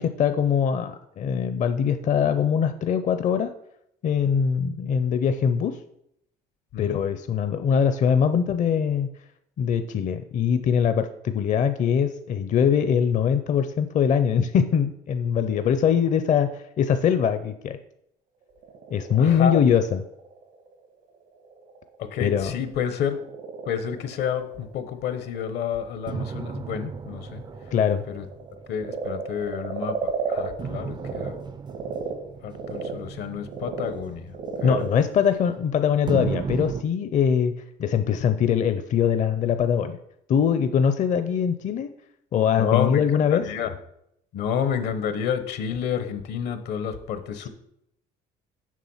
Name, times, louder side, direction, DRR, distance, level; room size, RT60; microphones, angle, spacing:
voice 1, 0.0-3.5 4.0-5.8 6.8-9.1 9.6-17.8 18.9-20.0 22.2-22.5 27.7-28.0 34.6-37.5 37.8-40.0 40.3-41.9 42.3-43.4, left 7 dB, 45° left, 9 dB, 0.6 m, -22 dB
Frog, 18.4-31.3 31.7-36.3, right 6 dB, 80° right, 1.5 m, -36 dB
voice 2, 19.2-19.6 22.0-23.2 23.7-27.4 28.1-28.2 28.7-31.3 32.4-34.3 34.6-34.9 42.6-43.0 43.4-43.7 44.3-47.5, left 8 dB, 75° left, 10 dB, 1.0 m, -29 dB
sound 1, 26.1-29.7 30.6-35.6 36.1-36.8, right 6 dB, 25° right, 0.4 m, -35 dB
7.4 x 6.1 x 5.6 m, 0.76 s
cardioid pair, 110°, 17 cm